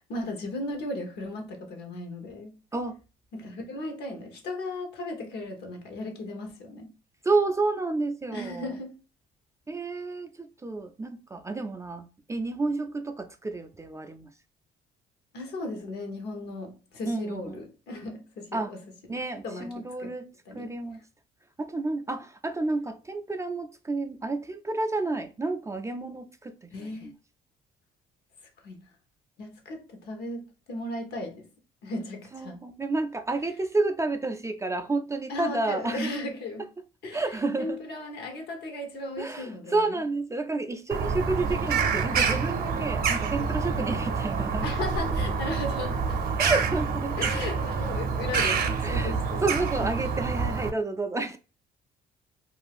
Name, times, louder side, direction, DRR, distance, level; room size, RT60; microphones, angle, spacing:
voice 1, 0.1-2.6 3.3-6.9 8.3-9.0 15.3-18.8 19.1-19.7 20.0-20.1 20.5-20.7 26.7-27.1 28.6-28.8 29.4-31.5 31.8-32.6 35.3-36.6 37.0-39.9 43.8-43.9 44.6-46.4 47.2-49.5 49.8-49.9, left 2 dB, 70° left, 1.0 m, -36 dB
voice 2, 7.2-8.7 9.7-14.3 17.1-17.6 18.5-18.7 19.1-20.3 20.5-21.0 21.6-26.7 27.0-27.1 32.3-36.2 37.1-37.8 39.2-44.7 46.4-47.3 48.8-51.4, right 3 dB, 15° right, 0.3 m, -30 dB
Bird vocalization bird call bird song, 40.9-50.7, right 5 dB, 55° right, 0.6 m, -27 dB
2.6 x 2.3 x 3.3 m
supercardioid pair, 75°, 18 cm